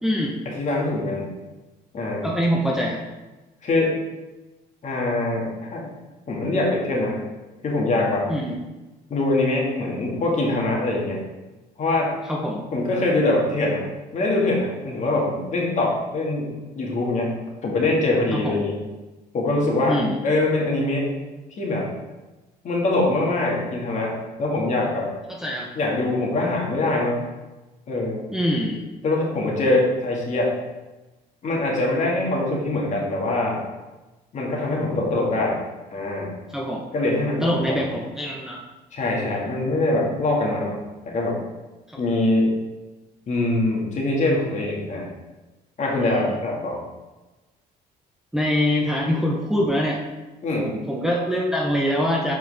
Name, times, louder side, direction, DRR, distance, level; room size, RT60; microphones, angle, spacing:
voice 1, 0.0-0.4 2.2-3.0 8.3-8.6 12.3-12.7 18.3-18.6 19.9-20.2 25.4-25.7 28.3-28.9 36.5-36.9 37.4-38.6 41.9-42.0 46.0-46.3 48.3-50.0 50.5-52.3, equal, 5° right, -2 dB, 0.8 m, -24 dB
voice 2, 0.6-1.3 1.9-2.3 3.6-4.0 4.8-5.9 6.3-7.2 7.6-8.3 9.1-11.2 11.8-12.1 12.7-13.8 14.1-18.8 19.3-21.1 21.6-21.9 22.6-25.1 25.7-27.2 27.9-28.2 29.0-30.5 31.4-33.6 34.3-35.6 35.9-36.4 36.9-37.9 38.9-40.8 41.1-41.4 42.0-42.6 43.3-45.1 45.8-46.8 50.4-50.8, left 2 dB, 45° left, -2 dB, 1.8 m, -23 dB
7.7 x 4.4 x 3.4 m, 1.1 s
cardioid pair, 110°, 17 cm